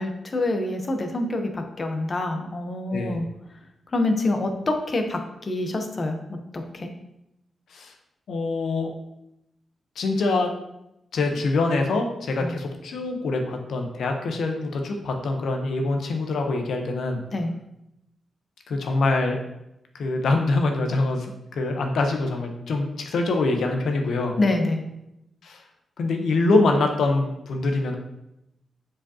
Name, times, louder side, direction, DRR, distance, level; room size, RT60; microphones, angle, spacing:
voice 1, 0.0-3.3 3.9-6.2 6.5-6.9 12.4-12.5 17.3-17.5 24.4-24.8, left 2 dB, 40° left, 5 dB, 0.9 m, -26 dB
voice 2, 8.3-8.9 10.0-10.5 11.1-17.2 18.7-19.4 19.9-24.3 25.4-25.6 26.0-28.0, left 2 dB, 80° left, 4 dB, 0.9 m, -24 dB
7.3 x 4.9 x 2.8 m, 0.85 s
cardioid pair, 95°, 0 cm